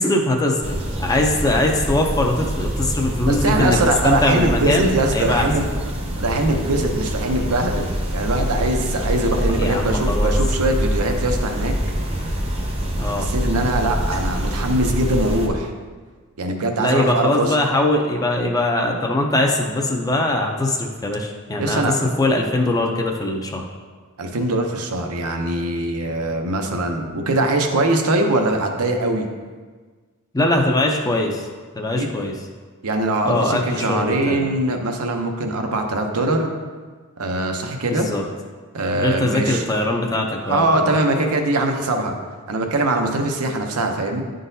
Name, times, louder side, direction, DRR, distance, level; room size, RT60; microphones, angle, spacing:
voice 1, 0.0-3.8 4.0-5.5 9.6-10.3 13.0-13.3 16.8-21.8 22.2-23.6 30.3-31.5 31.8-32.3 33.2-34.5 37.9-38.2 38.9-40.9, left 1 dB, 15° left, 1 dB, 0.5 m, -21 dB
sound 1, 0.6-15.5, equal, 30° right, 0.7 m, -25 dB
voice 2, 3.3-5.6 6.2-11.7 13.2-15.7 16.4-17.6 21.6-22.0 24.2-29.2 32.0-32.1 32.8-36.5 37.2-38.1 38.7-39.6 40.4-42.1 42.5-44.2, right 2 dB, 80° right, 3 dB, 0.7 m, -22 dB
9.9 x 3.8 x 2.7 m, 1.5 s
head